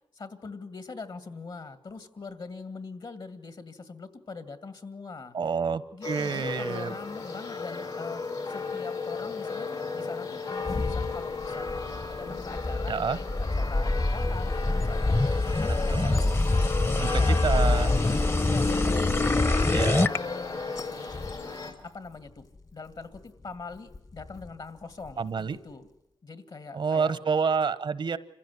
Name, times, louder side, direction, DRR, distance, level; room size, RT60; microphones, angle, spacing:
voice 1, 0.1-5.3 5.9-8.2 8.5-11.8 12.1-15.2 15.6-16.2 16.6-17.4 17.7-19.6 20.1-20.6 21.4-21.5 21.8-22.4 22.7-25.9 26.2-27.2, left 4 dB, 65° left, 11 dB, 2.2 m, -42 dB
voice 2, 5.3-6.9 12.9-13.2 15.9-16.4 17.0-18.0 19.7-20.1 25.2-25.6 26.7-28.2, right 5 dB, 75° right, 16 dB, 1.0 m, -28 dB
sound 1, 6.0-21.7, left 4 dB, 85° left, 3.6 m, -35 dB
sound 2, 10.6-25.7, left 3 dB, 50° left, 1.6 m, -42 dB
sound 3, 12.1-20.2, left 2 dB, 30° left, 0.8 m, -25 dB
26.5 x 15.5 x 9.7 m, 0.85 s
cardioid pair, 55°, 8 cm